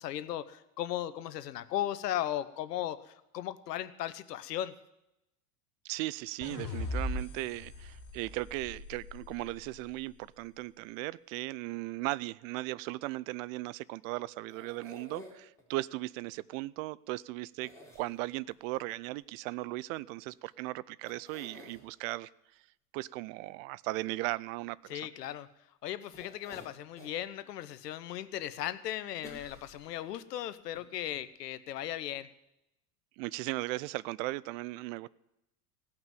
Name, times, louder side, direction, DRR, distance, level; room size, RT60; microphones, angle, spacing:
voice 1, 0.0-4.7 24.9-25.5 25.8-32.3, left 12 dB, 90° left, 14 dB, 0.9 m, -37 dB
voice 2, 5.8-22.3 22.9-25.1 33.2-35.1, right 19 dB, 60° right, 22 dB, 0.5 m, -37 dB
sound 1, 6.4-9.7, left 2 dB, 40° left, 3.0 m, -39 dB
sound 2, 14.5-15.6 17.6-18.5 20.5-20.6 21.1-21.8 26.1-27.2 27.7-27.8 29.2-30.2 30.7-30.8 31.1-31.2, left 1 dB, 5° left, 3.6 m, -51 dB
17.5 x 5.9 x 9.2 m, 0.87 s
hypercardioid pair, 110°, 47 cm